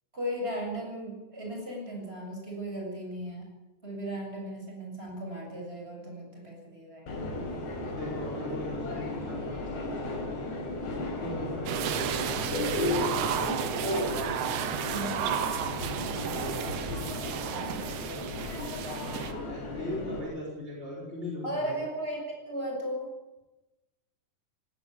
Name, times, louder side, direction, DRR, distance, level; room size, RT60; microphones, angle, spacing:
voice 1, 0.1-3.5 3.8-7.3 14.8-15.3 17.5-17.8 21.4-23.1, right 1 dB, 15° right, 0 dB, 7.7 m, -36 dB
Subway metro underground, 7.1-20.2, left 2 dB, 75° left, 6.5 m, -34 dB
voice 2, 7.8-10.2 11.2-13.7 16.3-16.6 18.9-21.8, left 2 dB, 15° left, -1 dB, 4.8 m, -39 dB
sound 1, 11.7-19.3, right 9 dB, 75° right, 3.4 m, -33 dB
18.5 x 18.5 x 8.4 m, 1.0 s
omnidirectional pair, 5.0 m